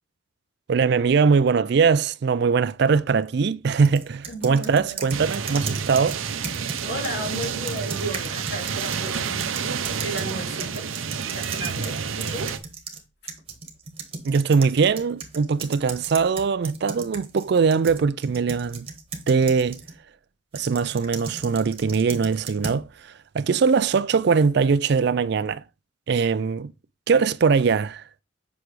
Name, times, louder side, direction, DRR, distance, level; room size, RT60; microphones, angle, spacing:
voice 1, 0.7-6.2 14.2-18.9 19.3-19.8 20.5-22.9 23.3-25.6 26.1-26.7 27.1-28.0, right 5 dB, 55° right, 0.4 m, -21 dB
sound 1, 3.8-13.0 13.3-20.0 20.6-22.8, right 4 dB, 30° right, 1.3 m, -37 dB
voice 2, 4.3-5.0 6.8-9.5 10.0-10.9 11.2-12.5, right 1 dB, 55° left, 2.9 m, -34 dB
sound 2, 5.1-12.6, right 6 dB, 85° right, 0.7 m, -29 dB
8.1 x 5.9 x 3.2 m
head